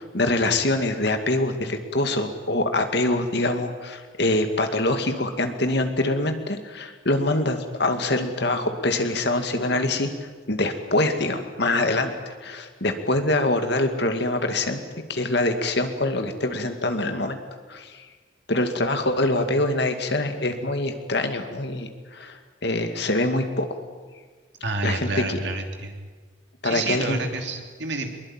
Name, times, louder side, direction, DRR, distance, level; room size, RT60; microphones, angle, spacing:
voice 1, 0.0-14.8 15.1-17.4 17.7-18.1 18.5-23.7 24.8-25.4 26.6-27.2, left 2 dB, 55° left, 6 dB, 2.3 m, -24 dB
voice 2, 24.6-26.1 26.6-28.1, right 2 dB, 60° right, 4 dB, 3.1 m, -29 dB
22.0 x 21.0 x 9.0 m, 1.4 s
head